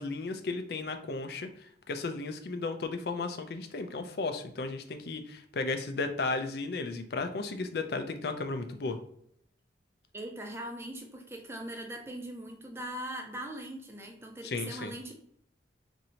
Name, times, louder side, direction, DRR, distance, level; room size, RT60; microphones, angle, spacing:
voice 1, 0.0-9.0 14.4-14.9, left 3 dB, 60° left, 7 dB, 0.4 m, -34 dB
voice 2, 10.1-15.1, right 1 dB, 15° right, 2 dB, 0.5 m, -40 dB
2.7 x 2.6 x 4.2 m, 0.67 s
head